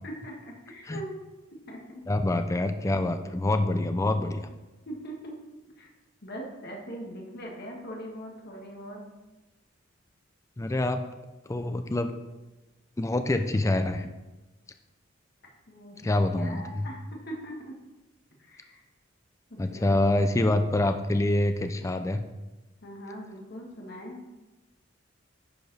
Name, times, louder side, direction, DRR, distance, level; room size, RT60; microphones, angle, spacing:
voice 1, 0.0-1.1 1.7-2.0 4.9-5.4 5.8-5.9 6.2-9.0 15.7-17.7 18.4-18.8 19.5-20.2 22.8-24.2, equal, 55° left, 0 dB, 1.5 m, -41 dB
voice 2, 2.1-4.5 10.6-11.1 11.5-12.2 13.0-14.1 16.0-16.9 19.6-22.3, left 2 dB, 15° left, 8 dB, 0.4 m, -26 dB
10.0 x 4.8 x 4.1 m, 1.1 s
head